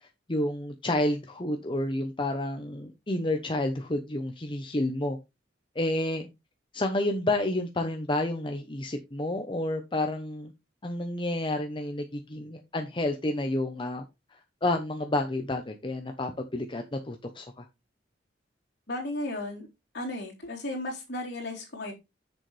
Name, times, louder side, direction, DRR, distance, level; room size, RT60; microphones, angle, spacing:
voice 1, 0.0-5.2 5.7-6.3 6.7-10.5 10.8-14.1 14.6-17.7, left 1 dB, 25° left, 0.9 m, -30 dB
voice 2, 18.9-19.7 19.9-21.9, left 1 dB, 60° left, 3.9 m, -34 dB
8.2 x 6.7 x 3.3 m
head